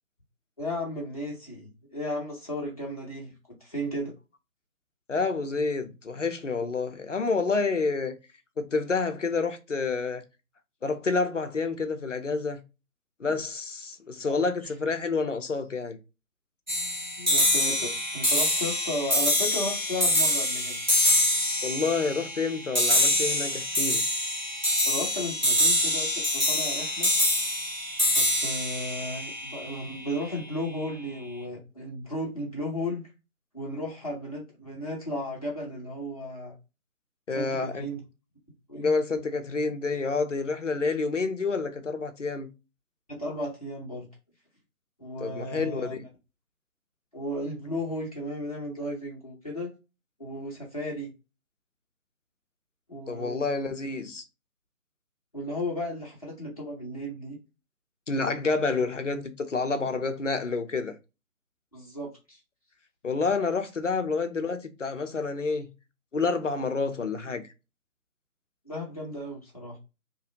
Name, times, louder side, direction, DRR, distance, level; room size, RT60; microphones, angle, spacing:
voice 1, 0.6-3.3 3.6-4.1 14.3-14.4 17.2-20.8 24.8-27.1 28.2-33.1 33.5-36.5 37.3-38.0 38.7-38.9 43.1-44.1 45.0-46.0 47.1-49.7 50.2-51.1 52.9-53.4 55.3-57.4 61.7-62.4 68.6-69.8, left 1 dB, 25° left, 0.7 m, -34 dB
voice 2, 5.1-8.2 8.6-10.2 10.8-12.6 13.2-16.0 21.6-24.0 37.3-37.9 38.7-42.5 45.2-46.0 53.1-54.2 58.1-61.0 63.0-65.7 66.1-67.4, left 4 dB, 55° left, 0.5 m, -28 dB
sound 1, 16.7-30.1, left 1 dB, 30° right, 0.6 m, -25 dB
2.8 x 2.3 x 2.7 m
figure-of-eight pair, 160°, 44 cm